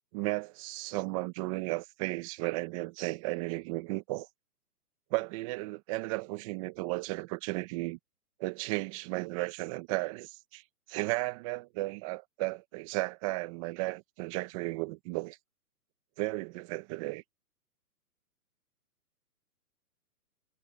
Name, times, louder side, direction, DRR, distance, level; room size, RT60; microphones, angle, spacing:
voice 1, 0.1-4.3 5.1-8.0 8.4-10.6 10.9-15.4 16.2-17.2, right 21 dB, 20° right, 1.2 m, -34 dB
hypercardioid pair, 160°, 47 cm